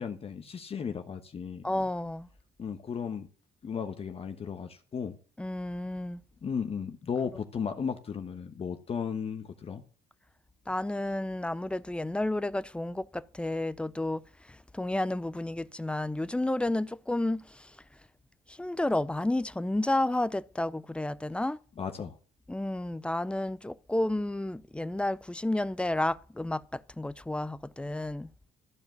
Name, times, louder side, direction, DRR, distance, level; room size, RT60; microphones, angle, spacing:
voice 1, 0.0-1.7 2.6-3.3 3.6-5.2 6.4-9.8 21.8-22.2, left 6 dB, 35° left, 1.1 m, -35 dB
voice 2, 1.6-2.3 5.4-6.2 10.7-17.8 18.5-21.6 22.5-28.3, left 1 dB, 5° left, 0.5 m, -31 dB
14.0 x 5.1 x 9.4 m
cardioid pair, 110°, 17 cm